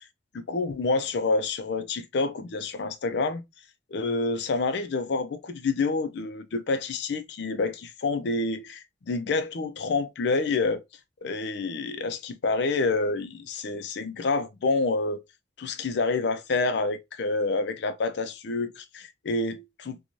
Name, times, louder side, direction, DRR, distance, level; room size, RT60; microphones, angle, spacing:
voice 1, 0.3-3.4 3.9-10.8 11.2-15.2 15.6-20.1, left 3 dB, 70° left, 0.4 m, -28 dB
2.6 x 2.3 x 2.9 m
head